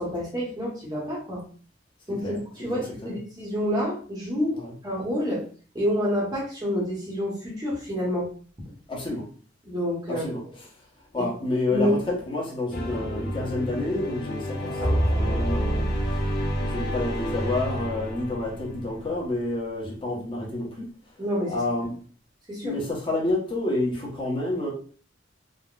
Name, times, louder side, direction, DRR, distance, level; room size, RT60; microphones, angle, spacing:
voice 1, 0.0-1.4 2.1-4.6 4.8-5.4 5.7-8.3 9.6-10.2 11.2-11.3 11.7-12.0 21.2-21.6 22.5-22.8, equal, 20° right, -6 dB, 0.9 m, -28 dB
voice 2, 2.7-3.1 4.5-4.7 8.9-9.3 10.1-10.4 11.1-15.9 16.6-20.9 21.5-21.9 22.6-24.7, left 2 dB, 25° left, -4 dB, 0.9 m, -29 dB
sound 1, 12.7-19.1, left 1 dB, 55° left, 0.6 m, -32 dB
sound 2, 14.5-18.4, right 1 dB, 65° right, 1.2 m, -28 dB
3.6 x 2.1 x 2.3 m, 0.42 s
head